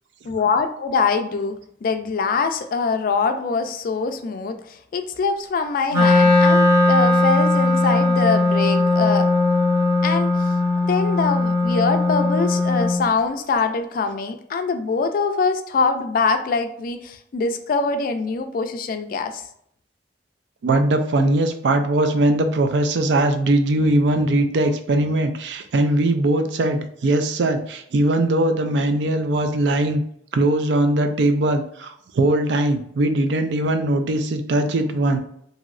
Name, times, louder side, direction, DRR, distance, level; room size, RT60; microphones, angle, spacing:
voice 1, 0.2-9.3 10.0-10.6 10.8-19.4, left 4 dB, 50° left, 7 dB, 0.3 m, -23 dB
Wind instrument woodwind instrument, 5.9-13.1, left 2 dB, 20° right, 0.6 m, -18 dB
voice 2, 20.6-30.0 30.3-35.2, right 1 dB, 70° right, 7 dB, 0.4 m, -20 dB
3.0 x 2.7 x 2.5 m, 0.69 s
head